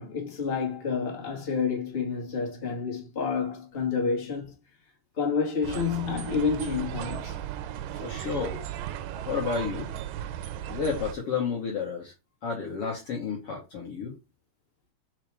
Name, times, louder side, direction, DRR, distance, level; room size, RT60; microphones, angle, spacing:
voice 1, 0.0-4.5 5.2-7.4 7.9-8.1, left 5 dB, 20° left, 1.9 m, -29 dB
sound 1, 5.6-11.2, right 11 dB, 90° right, 2.3 m, -35 dB
voice 2, 7.9-8.6 9.2-9.9 10.3-12.1 12.4-14.2, left 5 dB, 55° left, 2.1 m, -31 dB
4.9 x 4.7 x 4.8 m
omnidirectional pair, 3.7 m